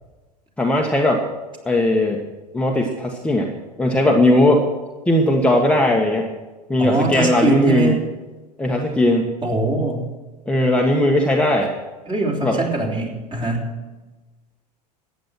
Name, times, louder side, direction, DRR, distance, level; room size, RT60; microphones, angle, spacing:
voice 1, 0.6-1.2 1.6-2.2 2.5-3.5 3.8-4.6 5.1-6.3 6.7-7.9 8.6-9.3 10.5-11.7 12.4-12.6, left 1 dB, 5° left, -1 dB, 1.5 m, -18 dB
voice 2, 6.8-8.0 9.4-10.1 12.1-13.7, right 3 dB, 25° right, -1 dB, 3.6 m, -22 dB
14.5 x 9.5 x 6.0 m, 1.2 s
figure-of-eight pair, 80°, 21 cm